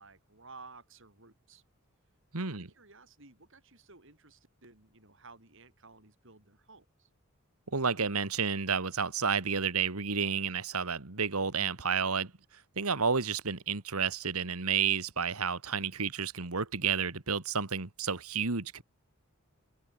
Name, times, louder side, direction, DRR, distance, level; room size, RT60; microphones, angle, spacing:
voice 1, 0.0-1.6 2.3-7.1, right 3 dB, 60° right, 6.7 m, -55 dB
voice 2, 2.3-2.7 7.7-12.3 12.8-18.8, right 6 dB, 90° right, 1.9 m, -31 dB
open air
head